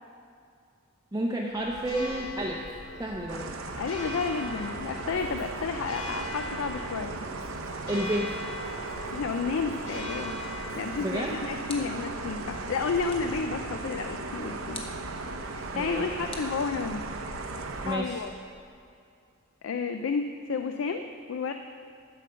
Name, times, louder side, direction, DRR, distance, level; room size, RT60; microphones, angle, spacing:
voice 1, 1.1-2.6 3.0-3.4 7.9-8.3 11.0-11.3 15.7-16.1 17.8-18.2, right 1 dB, 15° right, -2 dB, 0.6 m, -30 dB
Church bell, 1.5-18.8, left 1 dB, 90° left, 1.1 m, -42 dB
sound 1, 3.3-18.0, right 3 dB, 75° right, 0.7 m, -37 dB
voice 2, 3.8-7.1 9.1-10.3 10.8-14.8 15.5-17.0 17.9-18.3 19.6-21.5, left 5 dB, 65° left, 7 dB, 0.4 m, -31 dB
sound 2, 11.7-12.2 13.1-13.5 14.7-15.1 16.3-17.2, left 3 dB, 25° left, 1.0 m, -45 dB
11.5 x 5.0 x 6.7 m, 2.4 s
head